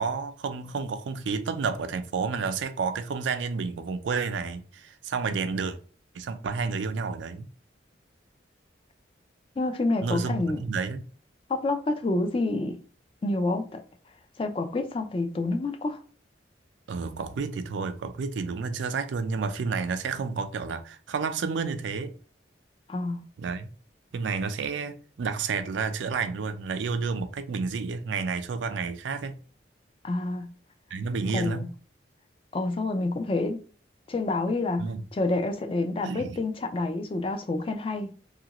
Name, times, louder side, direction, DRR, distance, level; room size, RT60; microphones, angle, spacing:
voice 1, 0.0-5.8 6.1-7.5 10.0-11.1 16.9-22.1 23.4-23.7 24.1-29.4 30.9-31.7 34.8-35.0 36.0-36.4, right 5 dB, 80° right, 0.4 m, -30 dB
voice 2, 9.6-10.6 11.5-12.8 13.2-13.8 14.4-16.0 22.9-23.2 30.0-30.5 31.3-31.7 32.5-33.6 34.1-34.9 35.1-38.1, left 2 dB, 30° left, 0.3 m, -28 dB
2.8 x 2.4 x 2.9 m
head